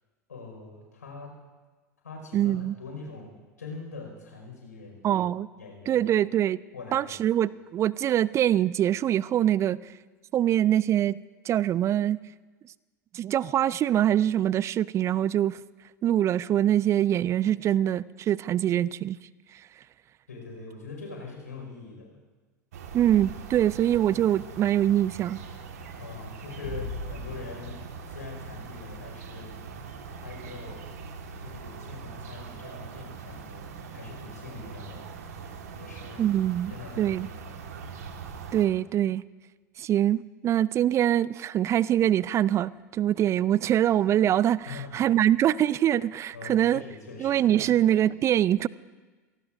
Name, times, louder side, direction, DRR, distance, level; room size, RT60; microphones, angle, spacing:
voice 1, 0.3-1.3 2.0-5.3 5.6-6.1 6.7-7.2 20.3-22.2 26.0-29.8 30.1-30.8 31.4-35.1 35.7-36.2 36.7-37.6 44.6-45.0 46.3-47.7, left 4 dB, 80° left, 1 dB, 5.1 m, -43 dB
voice 2, 2.3-2.8 5.0-5.5 5.9-6.6 6.9-9.8 10.3-11.2 11.4-12.2 13.1-15.6 16.0-19.2 19.5-19.6 22.9-25.4 36.2-37.3 38.5-39.2 39.8-46.8 47.2-48.7, right 11 dB, 35° right, 21 dB, 0.4 m, -24 dB
sound 1, 22.7-38.7, right 5 dB, 70° right, 1.6 m, -42 dB
sound 2, 26.6-29.1, left 4 dB, 65° left, 7.1 m, -40 dB
28.0 x 18.5 x 2.6 m, 1.3 s
figure-of-eight pair, 80°, 9 cm